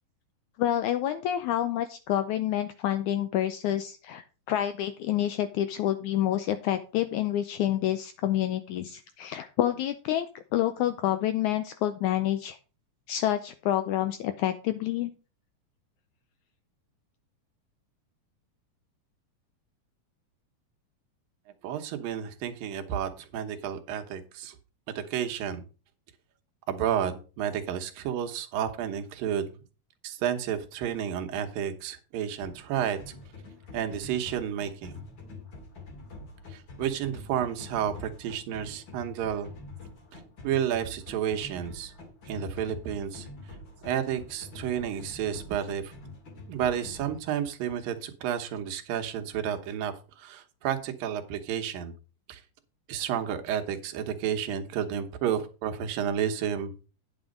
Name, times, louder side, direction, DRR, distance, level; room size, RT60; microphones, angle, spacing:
voice 1, 0.6-12.6 13.1-15.1, left 12 dB, 80° left, 10 dB, 1.8 m, -28 dB
voice 2, 21.6-24.6 25.0-25.6 26.7-29.5 30.0-33.0 33.7-35.0 36.5-39.5 40.4-41.9 42.3-43.3 43.8-45.9 46.5-51.9 52.3-52.4 52.9-56.9, right 9 dB, 85° right, 6 dB, 2.8 m, -31 dB
sound 1, 32.4-47.2, left 3 dB, 40° left, 2.5 m, -46 dB
9.7 x 6.2 x 5.1 m, 0.34 s
omnidirectional pair, 3.9 m